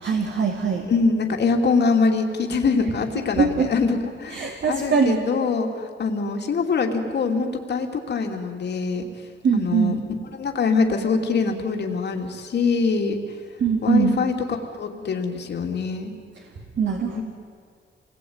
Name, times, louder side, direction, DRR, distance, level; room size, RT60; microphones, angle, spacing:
voice 1, 0.0-0.9 3.4-3.7 4.3-5.2 9.4-10.0 13.6-14.2 16.8-17.2, right 6 dB, 60° right, 2 dB, 2.4 m, -22 dB
voice 2, 0.9-9.1 9.5-10.0 10.3-13.2 13.8-14.4 14.8-16.1 17.1-17.2, left 4 dB, 55° left, 3 dB, 2.9 m, -23 dB
27.5 x 20.5 x 9.6 m, 2.2 s
wide cardioid pair, 150°, 20 cm